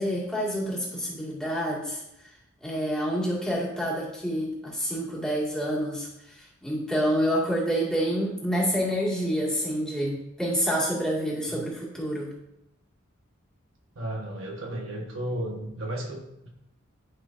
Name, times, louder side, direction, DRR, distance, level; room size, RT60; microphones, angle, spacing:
voice 1, 0.0-2.0 2.6-12.3, equal, 5° left, -6 dB, 2.1 m, -28 dB
voice 2, 13.9-16.5, right 1 dB, 70° right, 0 dB, 1.3 m, -34 dB
11.5 x 5.6 x 2.7 m, 0.84 s
head